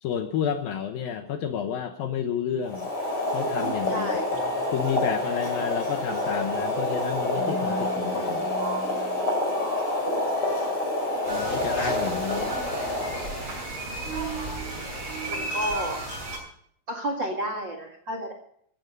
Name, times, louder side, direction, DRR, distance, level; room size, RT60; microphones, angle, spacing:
voice 1, 0.0-2.9 3.3-4.1 4.7-8.5 11.3-12.6, left 8 dB, 90° left, 7 dB, 2.0 m, -30 dB
Boiling, 2.6-13.6, left 2 dB, 25° left, 5.4 m, -28 dB
voice 2, 3.9-4.3 9.4-9.7 15.3-16.0 16.9-18.3, equal, 65° right, 4 dB, 1.1 m, -31 dB
sound 1, 4.3-16.1, right 5 dB, 80° right, 4.4 m, -39 dB
sound 2, 11.2-16.4, right 1 dB, 20° right, 7.2 m, -34 dB
15.5 x 13.5 x 5.4 m, 0.66 s
omnidirectional pair, 5.6 m